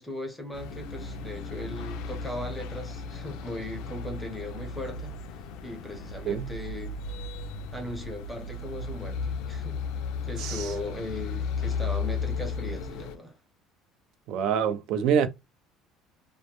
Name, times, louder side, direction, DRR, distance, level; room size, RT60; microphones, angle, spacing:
voice 1, 0.0-5.2 5.6-7.0 7.7-9.8 10.2-13.4, left 1 dB, ahead, 0.6 m, -38 dB
sound 1, 0.5-13.2, left 4 dB, 70° left, 0.3 m, -35 dB
voice 2, 10.4-10.7 14.3-15.3, right 8 dB, 55° right, 0.4 m, -26 dB
2.1 x 2.0 x 2.9 m
cardioid pair, 160°, 0 cm